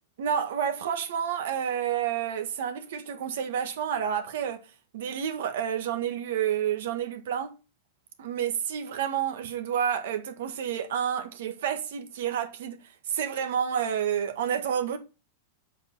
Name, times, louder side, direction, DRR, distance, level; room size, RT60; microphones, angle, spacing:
voice 1, 0.2-4.7 4.9-7.5 8.2-15.0, right 8 dB, 75° right, 1.6 m, -29 dB
8.0 x 5.0 x 5.4 m
supercardioid pair, 140°, 0 cm